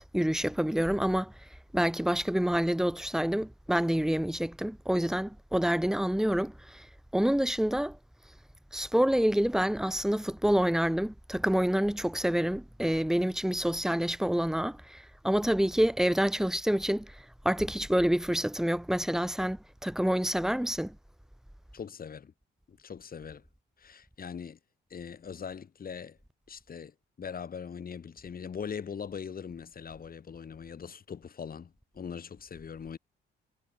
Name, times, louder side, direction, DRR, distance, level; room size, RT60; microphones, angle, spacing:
voice 1, 0.0-1.3 1.7-6.9 7.1-8.0 8.7-17.2 17.4-20.9, equal, ahead, 1.2 m, -27 dB
voice 2, 21.7-22.3 22.7-23.4 23.8-24.6 24.9-26.2 26.5-33.0, left 7 dB, 45° left, 7.2 m, -41 dB
cardioid pair, 90°, 20 cm